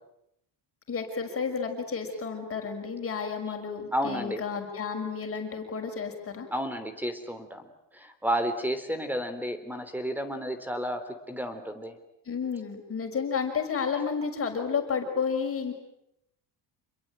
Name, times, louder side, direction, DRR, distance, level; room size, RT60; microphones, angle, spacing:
voice 1, 0.9-6.5 12.3-15.7, left 6 dB, 30° left, 4 dB, 6.1 m, -31 dB
voice 2, 3.9-4.4 6.5-7.6 7.9-11.0 11.3-12.0, equal, 5° right, 10 dB, 3.5 m, -31 dB
28.5 x 22.0 x 9.1 m, 0.79 s
cardioid pair, 135°, 44 cm